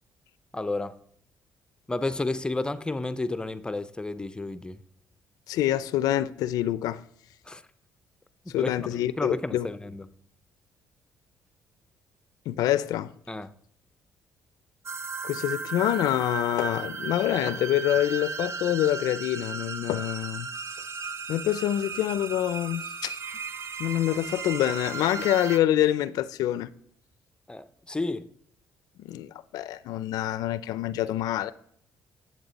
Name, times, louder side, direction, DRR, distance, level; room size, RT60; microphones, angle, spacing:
voice 1, 0.5-1.0 1.9-4.8 7.5-7.6 8.6-10.1 13.3-13.5 27.5-28.3, left 2 dB, 15° left, 0.6 m, -31 dB
voice 2, 5.5-7.0 8.5-9.7 12.5-13.1 15.2-20.5 21.3-23.2 23.8-26.7 29.0-31.5, left 12 dB, 85° left, 0.4 m, -26 dB
sound 1, 14.9-25.6, right 5 dB, 45° right, 0.8 m, -35 dB
11.0 x 7.5 x 4.1 m
cardioid pair, 95°, 6 cm